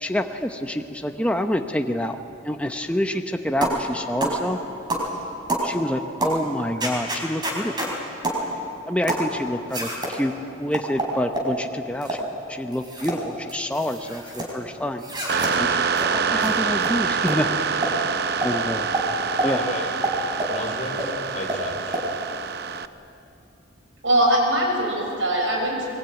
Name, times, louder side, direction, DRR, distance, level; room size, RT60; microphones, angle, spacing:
voice 1, 0.0-2.2 2.4-4.6 5.6-7.7 8.9-10.3 10.6-12.2 12.5-18.0 18.4-18.9 19.4-19.6, left 1 dB, 5° left, 5 dB, 0.8 m, -27 dB
sound 1, 3.6-3.8 4.2-4.4 4.9-5.1 5.5-5.7 6.2-6.4 6.8-7.9 8.2-8.4 9.1-9.3 9.7-10.1 10.7-11.5 12.0-12.2 12.7-13.2 13.5-14.5 15.0-15.5 16.0-16.1 16.4-16.5 16.8-16.9 17.3-17.4 17.8-18.0 18.4-18.5 18.9-19.1 19.4-19.5 20.0-20.6 21.0-21.1 21.5-21.6 21.9-22.1, right 2 dB, 20° right, 4.6 m, -27 dB
sound 2, 15.3-22.9, right 6 dB, 55° right, 0.7 m, -26 dB
voice 2, 19.4-19.9 20.5-22.0, left 2 dB, 35° left, 3 dB, 3.2 m, -33 dB
voice 3, 24.0-25.8, right 1 dB, 80° right, 0 dB, 6.6 m, -21 dB
23.0 x 21.0 x 9.2 m, 2.7 s
head